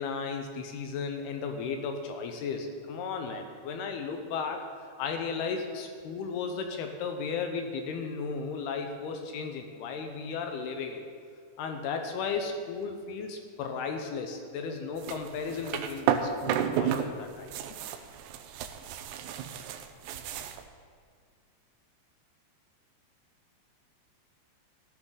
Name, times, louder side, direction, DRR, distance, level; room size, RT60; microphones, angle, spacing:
voice 1, 0.0-4.7 5.0-11.0 11.6-17.5, left 5 dB, 75° left, 5 dB, 2.7 m, -35 dB
sound 1, 15.0-17.1 17.3-20.6, right 9 dB, 85° right, 2.7 m, -32 dB
14.5 x 13.0 x 3.9 m, 2.1 s
omnidirectional pair, 4.9 m